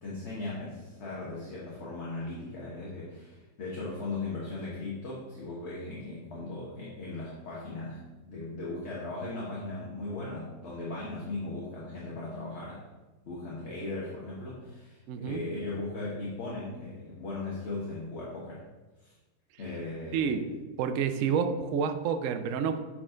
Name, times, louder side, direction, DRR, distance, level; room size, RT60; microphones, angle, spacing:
voice 1, 0.0-12.8 13.3-18.6 19.0-19.1 19.6-20.4, left 2 dB, 45° left, -6 dB, 1.3 m, -38 dB
voice 2, 15.1-15.4 20.1-20.5 20.8-22.8, right 6 dB, 70° right, 8 dB, 0.7 m, -29 dB
7.3 x 4.3 x 3.8 m, 1.2 s
omnidirectional pair, 1.8 m